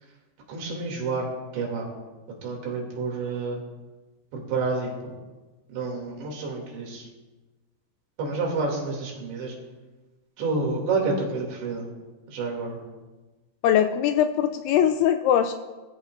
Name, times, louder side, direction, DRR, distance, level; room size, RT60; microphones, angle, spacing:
voice 1, 0.5-1.3 1.5-1.9 2.4-3.6 4.3-5.1 5.7-7.1 8.2-9.6 10.4-11.8 12.3-12.8, right 3 dB, 65° right, -1 dB, 4.8 m, -29 dB
voice 2, 13.6-15.5, left 10 dB, 85° left, 8 dB, 2.7 m, -21 dB
22.0 x 13.5 x 2.6 m, 1.2 s
omnidirectional pair, 5.6 m